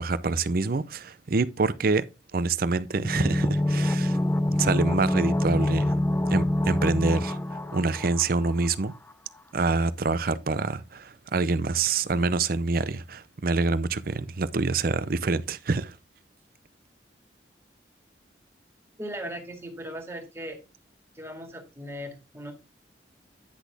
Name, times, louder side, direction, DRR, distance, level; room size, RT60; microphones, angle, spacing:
voice 1, 0.0-2.0 2.3-4.2 4.5-6.0 6.3-8.9 9.5-16.0, right 3 dB, 55° right, 0.6 m, -26 dB
sound 1, 3.0-8.7 8.9-9.0, left 1 dB, 10° left, 0.5 m, -26 dB
voice 2, 19.0-20.6 21.1-22.5, equal, 15° right, 2.0 m, -38 dB
10.0 x 6.1 x 3.4 m
head